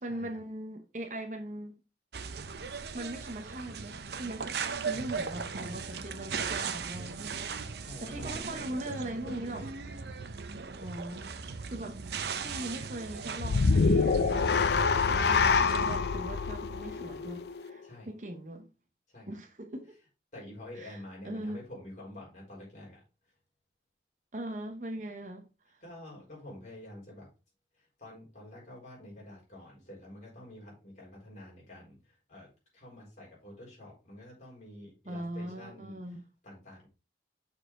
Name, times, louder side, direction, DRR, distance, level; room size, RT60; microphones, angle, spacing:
voice 1, 0.0-1.8 2.9-7.5 7.7-9.7 10.7-12.0 12.4-18.7 19.3-20.0 20.7-21.6 24.3-25.8 35.1-36.2, right 1 dB, 40° right, 0.9 m, -40 dB
sound 1, 2.1-16.0, right 5 dB, 65° right, 0.6 m, -38 dB
voice 2, 4.9-5.5 7.8-9.7 17.8-18.1 19.1-19.4 20.3-23.0 25.8-27.3 27.8-32.5 32.7-36.0 36.4-36.9, left 1 dB, 40° left, 4.3 m, -48 dB
sound 2, 13.4-17.8, left 4 dB, 65° left, 0.5 m, -26 dB
6.5 x 4.9 x 3.8 m
head